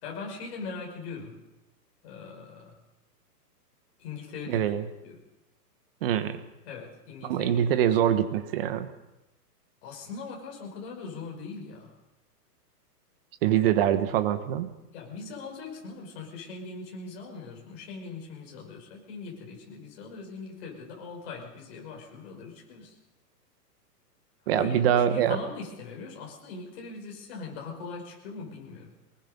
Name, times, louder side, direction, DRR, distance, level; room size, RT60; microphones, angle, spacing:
voice 1, 0.0-1.4 2.0-2.8 4.0-4.7 5.0-5.2 6.7-8.0 9.8-12.0 14.9-23.0 24.6-28.9, left 4 dB, 40° left, 0 dB, 5.5 m, -41 dB
voice 2, 4.5-4.8 6.0-6.4 7.2-8.9 13.4-14.7 24.5-25.4, right 10 dB, 35° right, 11 dB, 1.3 m, -24 dB
24.0 x 20.5 x 5.4 m, 1.0 s
hypercardioid pair, 160°, 48 cm